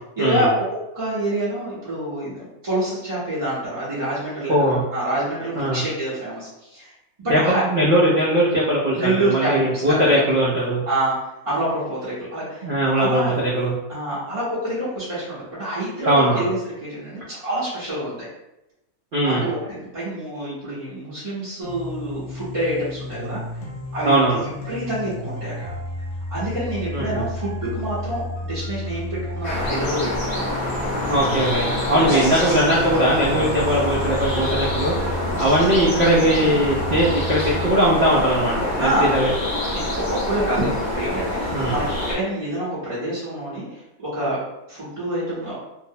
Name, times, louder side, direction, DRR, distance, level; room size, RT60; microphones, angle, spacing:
voice 1, 0.2-0.6 0.9-6.9 7.2-7.6 8.9-9.8 10.9-11.1 11.4-12.7 13.0-13.3 13.9-18.3 19.2-23.4 23.9-24.1 24.7-25.5 26.3-30.5 31.9-32.1 35.5-35.7 38.8-39.1 39.7-44.4 44.7-45.5, right 1 dB, 30° right, -11 dB, 0.7 m, -27 dB
voice 2, 4.5-4.8 5.6-5.8 7.3-10.8 12.6-13.8 16.1-16.5 19.1-19.5 24.0-24.4 26.9-27.2 31.1-35.0 35.4-39.3 41.5-41.8, right 1 dB, 75° right, -6 dB, 0.5 m, -20 dB
sound 1, 21.6-37.6, left 1 dB, 55° left, 0.8 m, -32 dB
sound 2, 29.4-42.2, left 1 dB, 25° left, 0.8 m, -26 dB
2.6 x 2.0 x 2.6 m, 0.92 s
omnidirectional pair, 1.6 m